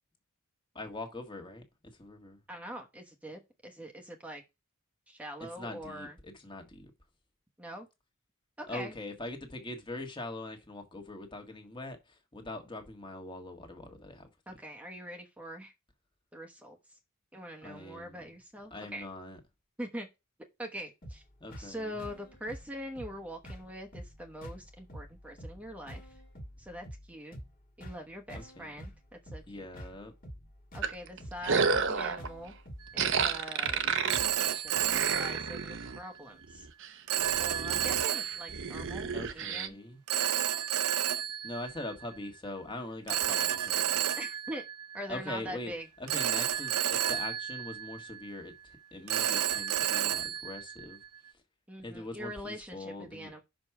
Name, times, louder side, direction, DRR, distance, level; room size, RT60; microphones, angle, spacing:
voice 1, 0.7-1.6 2.0-2.4 5.4-6.9 8.7-14.3 17.6-18.3 18.7-19.4 21.4-22.0 28.3-28.7 29.5-30.1 39.1-40.0 41.4-44.0 45.1-45.7 46.0-46.7 47.1-51.0 51.8-53.3, left 2 dB, 20° left, 1.6 m, -42 dB
voice 2, 2.5-4.4 5.1-6.2 7.6-7.9 8.6-8.9 14.5-15.7 16.3-16.8 17.3-19.1 19.8-20.1 20.6-21.2 21.6-26.0 26.6-27.4 27.8-29.7 30.7-32.5 32.9-36.7 37.3-39.8 44.2-44.6 44.9-45.9 51.7-53.4, equal, 5° right, 1.1 m, -43 dB
sound 1, 21.0-34.4, equal, 40° left, 1.9 m, -48 dB
sound 2, 30.8-32.3 33.0-36.0 36.4-36.9 37.2-39.7, right 5 dB, 55° right, 0.8 m, -31 dB
Telephone, 32.8-33.1 34.1-36.1 37.1-38.8 40.1-42.3 43.1-45.4 46.1-48.4 49.1-51.3, right 10 dB, 90° right, 0.5 m, -31 dB
6.1 x 5.1 x 5.9 m
head